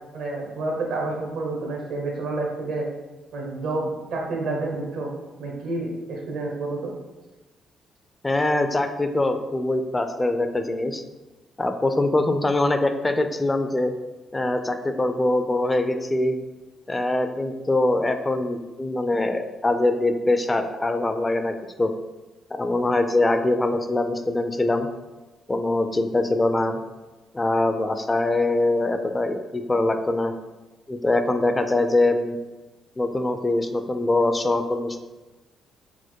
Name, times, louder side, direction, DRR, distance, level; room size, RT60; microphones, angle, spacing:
voice 1, 0.1-2.9 3.3-5.1 5.4-6.9, right 2 dB, 85° right, 0 dB, 1.0 m, -29 dB
voice 2, 8.2-11.0 11.6-13.9 14.3-16.4 16.9-21.9 22.5-24.9 25.5-26.8 27.3-30.3 30.9-32.4 33.0-35.0, left 2 dB, 20° left, 7 dB, 0.3 m, -23 dB
4.3 x 2.1 x 4.5 m, 1.1 s
cardioid pair, 90°, 0 cm